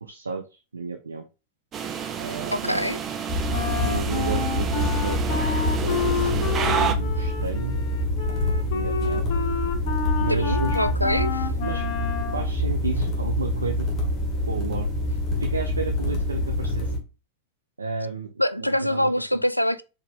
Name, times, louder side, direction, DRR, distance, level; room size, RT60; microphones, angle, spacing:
voice 1, 0.0-1.2 2.2-3.0 3.8-5.5 5.8-7.8 8.7-9.3 10.2-10.8 11.1-11.2 11.6-11.8 12.3-13.9 14.5-16.9 17.8-18.3 18.6-19.4, right 5 dB, 75° right, 0.5 m, -32 dB
sound 1, 1.7-6.9, right 7 dB, 30° right, 0.6 m, -30 dB
voice 2, 2.5-3.0 10.3-11.5 18.4-19.8, left 1 dB, 90° left, 0.3 m, -24 dB
sound 2, 3.3-17.0, left 1 dB, 30° left, 1.7 m, -26 dB
Wind instrument woodwind instrument, 3.5-12.5, left 7 dB, 50° left, 0.8 m, -30 dB
4.6 x 3.4 x 3.3 m
figure-of-eight pair, 90°, 0 cm